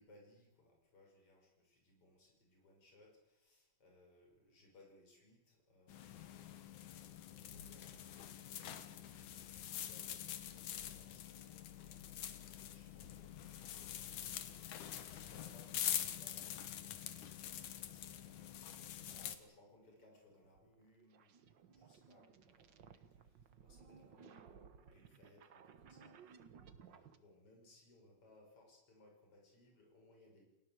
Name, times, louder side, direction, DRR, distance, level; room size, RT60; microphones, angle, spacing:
voice 1, 0.0-6.5 7.3-17.7 18.1-26.5 26.8-30.4, left 1 dB, 40° left, 1 dB, 7.1 m, -67 dB
sound 1, 5.9-19.4, left 10 dB, 65° left, 2.7 m, -45 dB
sound 2, 19.7-27.2, right 6 dB, 65° right, 1.1 m, -60 dB
29.5 x 16.5 x 8.1 m, 0.96 s
omnidirectional pair, 3.9 m